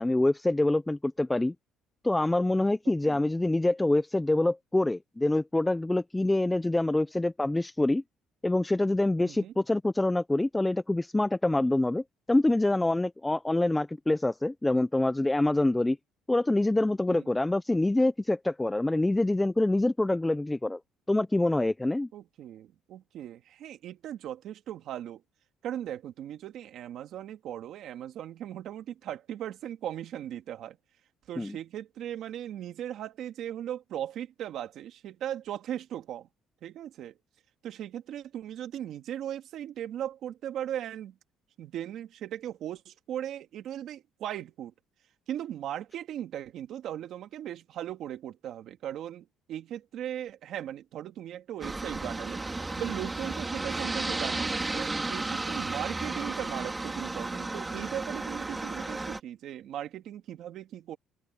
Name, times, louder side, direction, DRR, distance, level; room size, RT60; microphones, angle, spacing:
voice 1, 0.0-1.5 2.0-8.0 8.4-16.0 16.3-20.8 21.1-22.1 31.4-31.6, left 2 dB, 10° left, 0.5 m, -26 dB
voice 2, 9.2-9.5 17.1-17.3 22.1-25.2 25.6-30.8 31.3-36.3 36.6-37.1 37.6-41.1 41.6-44.7 45.3-52.4 52.8-61.0, right 11 dB, 55° right, 2.0 m, -38 dB
Aircraft, 51.6-59.2, right 2 dB, 15° right, 3.6 m, -33 dB
open air
cardioid pair, 145°, 0 cm